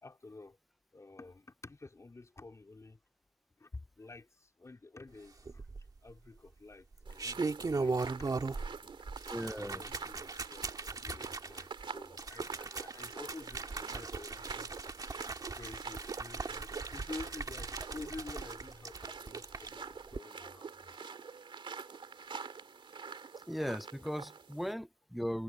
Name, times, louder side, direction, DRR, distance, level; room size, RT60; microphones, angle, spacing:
voice 1, 0.0-0.6 0.9-3.0 3.6-9.2 9.6-14.7 15.5-20.9, left 3 dB, 35° left, 3.9 m, -50 dB
sound 1, 5.5-6.1 6.9-8.8 9.1-19.7 20.1-20.2, right 3 dB, 45° right, 2.2 m, -39 dB
sound 2, 7.0-24.7, right 5 dB, 70° right, 2.7 m, -47 dB
voice 2, 9.3-9.8 23.5-25.4, equal, ahead, 0.5 m, -37 dB
wide cardioid pair, 105°, 9 cm